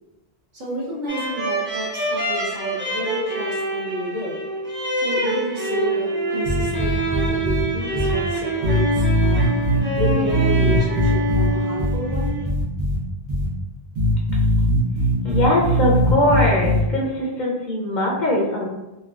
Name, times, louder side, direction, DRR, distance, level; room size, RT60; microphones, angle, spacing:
voice 1, 0.5-4.4 5.0-9.5 10.0-12.4, equal, 55° right, -4 dB, 0.7 m, -30 dB
sound 1, 1.1-12.5, right 2 dB, 15° right, 0.4 m, -26 dB
sound 2, 6.4-7.6 7.9-8.1 8.6-11.5 11.8-13.0 13.3-13.5 13.9-16.8, equal, 90° right, 1.0 m, -20 dB
voice 2, 15.2-18.7, left 1 dB, 55° left, -3 dB, 0.6 m, -21 dB
3.1 x 2.2 x 2.3 m, 1.0 s
omnidirectional pair, 1.1 m